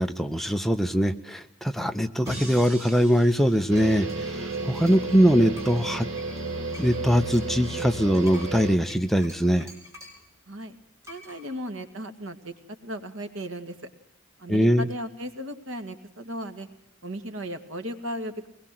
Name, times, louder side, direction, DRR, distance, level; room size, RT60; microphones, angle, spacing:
voice 1, 0.0-6.1 6.8-9.7 14.5-14.9, equal, ahead, 7 dB, 0.9 m, -22 dB
sound 1, 2.2-2.8 3.8-5.2 5.5-10.3 11.0-11.4, left 1 dB, 15° right, 6.6 m, -49 dB
sound 2, 2.3-5.4, equal, 30° right, 6.1 m, -43 dB
sound 3, 3.7-8.8, right 2 dB, 60° right, 3.3 m, -33 dB
voice 2, 11.1-12.5 12.8-13.8 14.4-16.7 17.0-18.5, equal, 80° right, 7 dB, 2.3 m, -36 dB
23.5 x 20.5 x 7.7 m, 0.77 s
head